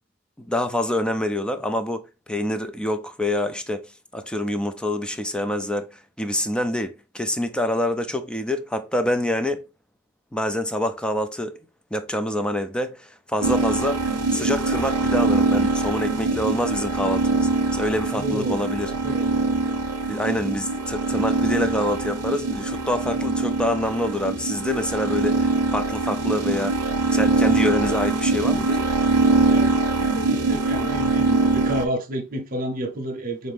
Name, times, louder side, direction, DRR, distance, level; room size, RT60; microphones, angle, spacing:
voice 1, 0.4-3.9 4.1-9.6 10.3-11.6 11.9-14.0 14.3-18.9 20.1-26.8 27.1-28.8, left 1 dB, 5° left, 0.3 m, -26 dB
sound 1, 13.4-31.8, right 3 dB, 90° right, 0.6 m, -23 dB
voice 2, 18.1-18.7 19.0-19.9 29.5-33.5, right 1 dB, 40° right, 0.7 m, -31 dB
4.1 x 2.5 x 3.4 m
head